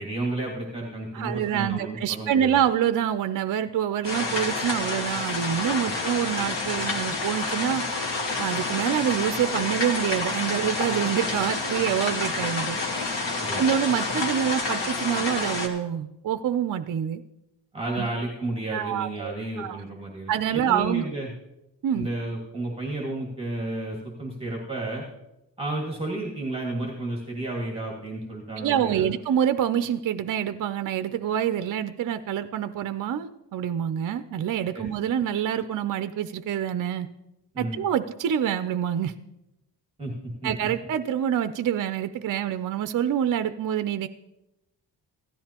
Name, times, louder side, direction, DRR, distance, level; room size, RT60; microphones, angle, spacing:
voice 1, 0.0-2.6 5.8-5.9 13.4-13.6 17.7-21.3 21.9-25.0 25.6-29.1 34.7-34.9 37.5-37.8 40.0-40.5, right 2 dB, 15° right, -2 dB, 1.8 m, -32 dB
voice 2, 1.1-7.8 8.4-12.8 13.6-17.2 18.0-18.1 18.7-19.8 20.3-21.1 21.8-22.1 28.6-37.1 37.6-39.1 40.4-44.1, right 9 dB, 50° right, 11 dB, 0.5 m, -26 dB
sound 1, 4.0-15.7, left 3 dB, 70° left, 1.8 m, -28 dB
16.0 x 12.5 x 2.9 m, 0.92 s
wide cardioid pair, 170°, 44 cm